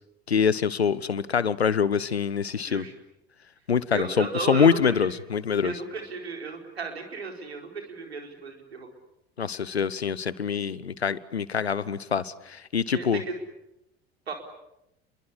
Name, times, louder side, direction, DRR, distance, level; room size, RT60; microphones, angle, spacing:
voice 1, 0.3-2.8 3.7-5.7 9.4-13.2, left 6 dB, 85° left, 19 dB, 1.0 m, -25 dB
voice 2, 2.6-2.9 3.9-4.9 5.6-8.9 12.9-13.3 14.3-14.4, right 4 dB, 80° right, 4 dB, 4.4 m, -35 dB
29.0 x 22.5 x 8.4 m, 0.86 s
figure-of-eight pair, 65°, 31 cm